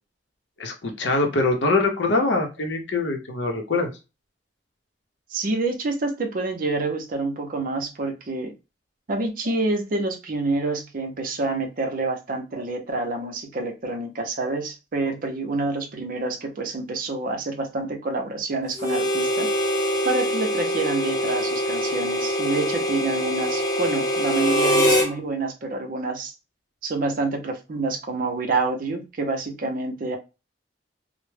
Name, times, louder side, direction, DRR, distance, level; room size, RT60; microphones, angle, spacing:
voice 1, 0.6-3.9, left 3 dB, 75° left, 3 dB, 0.6 m, -23 dB
voice 2, 5.3-8.5 9.1-19.5 20.0-26.3 26.8-30.2, right 3 dB, 50° right, 4 dB, 0.5 m, -27 dB
Harmonica, 18.8-25.1, equal, 20° left, 0.7 m, -23 dB
2.1 x 2.0 x 3.1 m, 0.28 s
head